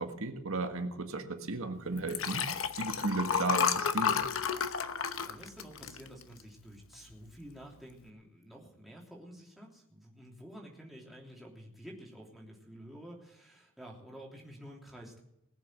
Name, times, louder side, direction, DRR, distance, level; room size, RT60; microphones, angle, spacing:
voice 1, 0.0-2.5 2.8-4.2, right 3 dB, 80° right, 1.6 m, -35 dB
Liquid, 2.0-6.6 7.1-7.4 7.6-7.7, left 6 dB, 80° left, 1.0 m, -31 dB
voice 2, 5.1-15.2, equal, ahead, 3.1 m, -50 dB
20.0 x 7.0 x 7.5 m
head